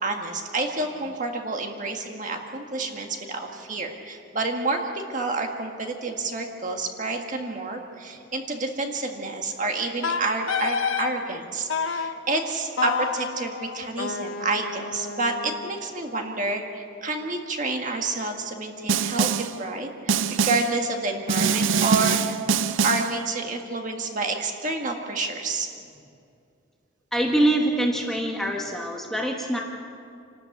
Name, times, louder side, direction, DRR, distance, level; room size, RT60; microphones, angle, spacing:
voice 1, 0.0-22.2 22.8-25.7, right 3 dB, 35° right, 3 dB, 1.8 m, -29 dB
Wind instrument woodwind instrument, 10.0-11.1 11.7-12.1 12.8-15.8, left 6 dB, 75° left, 1.1 m, -29 dB
Snare drum, 18.9-19.6 20.1-20.8 21.3-23.2, right 6 dB, 65° right, 0.6 m, -23 dB
voice 2, 27.1-29.6, right 1 dB, ahead, 0 dB, 1.4 m, -24 dB
27.0 x 13.0 x 8.4 m, 2.4 s
head